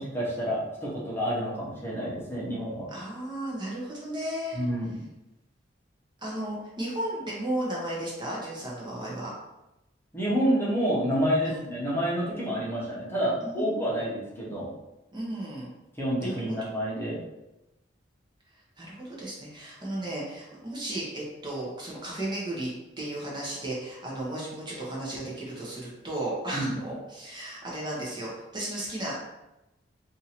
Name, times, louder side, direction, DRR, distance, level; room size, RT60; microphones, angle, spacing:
voice 1, 0.0-2.9 4.5-5.0 10.1-14.7 16.0-17.2 26.5-26.7, equal, 15° left, -7 dB, 0.9 m, -28 dB
voice 2, 2.9-4.6 6.2-9.3 11.4-11.6 13.4-14.2 15.1-15.7 16.2-16.7 18.8-22.7 23.0-29.2, right 1 dB, 25° right, -5 dB, 0.8 m, -34 dB
2.7 x 2.7 x 4.2 m, 0.96 s
head